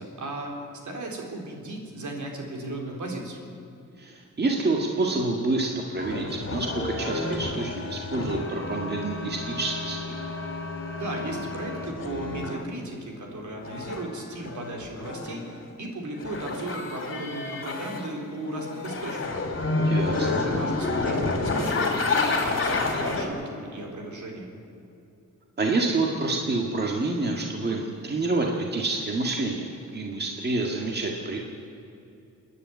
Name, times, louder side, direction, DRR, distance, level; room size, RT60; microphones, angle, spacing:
voice 1, 0.0-3.4 10.9-19.4 20.2-24.5, right 2 dB, 65° right, 1 dB, 4.1 m, -36 dB
voice 2, 4.0-10.2 19.8-20.4 25.6-31.4, right 3 dB, 30° right, 0 dB, 1.9 m, -28 dB
sound 1, 6.0-12.6 13.6-15.6 16.2-18.1 18.5-23.3, left 3 dB, 40° left, 3.3 m, -29 dB
28.0 x 10.5 x 9.6 m, 2.7 s
wide cardioid pair, 145°, 32 cm